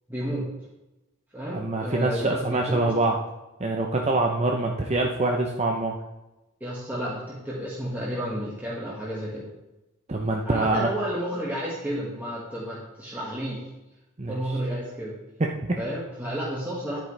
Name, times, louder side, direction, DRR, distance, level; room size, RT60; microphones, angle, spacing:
voice 1, 0.1-0.5 1.3-2.9 6.6-9.5 10.4-13.6 14.3-15.1 15.8-17.0, equal, 10° right, -7 dB, 1.7 m, -31 dB
voice 2, 1.5-3.1 3.6-6.0 10.1-10.9 14.2-14.3 15.4-15.8, right 2 dB, 30° right, 1 dB, 0.7 m, -25 dB
10.5 x 9.2 x 3.3 m, 0.99 s
head